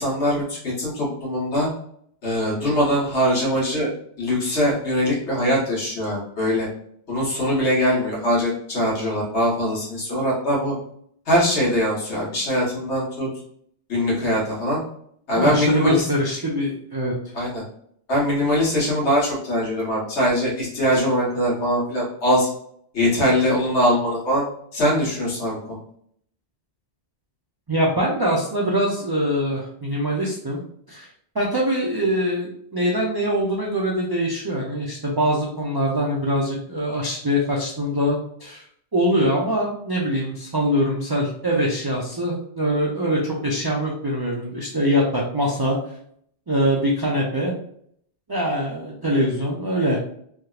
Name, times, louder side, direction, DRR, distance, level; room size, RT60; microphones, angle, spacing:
voice 1, 0.0-1.7 2.2-3.9 4.2-6.7 7.1-10.7 11.3-13.3 13.9-14.8 15.3-16.1 17.3-17.6 18.1-22.5 22.9-24.4 24.7-25.8, equal, 75° left, -5 dB, 1.6 m, -22 dB
voice 2, 15.3-17.1 27.7-30.6 30.9-31.1 31.3-38.6 38.9-45.8 46.5-47.5 48.3-50.0, equal, 35° right, -3 dB, 0.3 m, -23 dB
3.4 x 2.8 x 2.3 m, 0.66 s
omnidirectional pair, 1.2 m